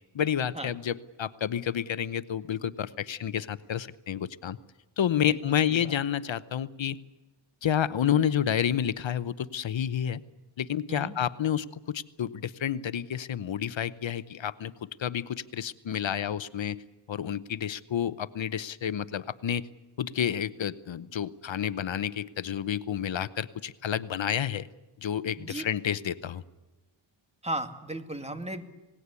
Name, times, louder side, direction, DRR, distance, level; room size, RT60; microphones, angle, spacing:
voice 1, 0.1-4.6 5.0-7.0 7.6-10.2 10.6-16.8 17.1-19.6 20.0-24.7 25.0-26.4, left 9 dB, 75° left, 15 dB, 0.9 m, -30 dB
voice 2, 27.4-28.6, right 1 dB, 15° right, 7 dB, 2.3 m, -35 dB
27.0 x 19.5 x 8.3 m, 1.1 s
wide cardioid pair, 95°, 46 cm